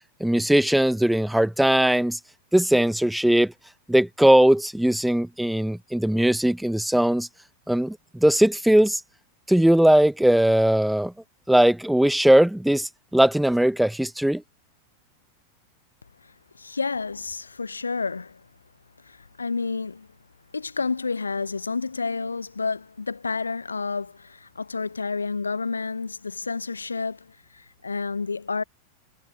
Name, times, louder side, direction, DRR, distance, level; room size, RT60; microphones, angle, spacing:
voice 1, 0.2-2.2 2.5-3.5 3.9-7.3 7.7-9.0 9.5-11.1 11.5-14.4, right 1 dB, ahead, 0.7 m, -19 dB
voice 2, 16.2-18.5 19.0-20.1 20.5-28.6, left 4 dB, 75° left, 2.4 m, -30 dB
figure-of-eight pair, 90°, 0 cm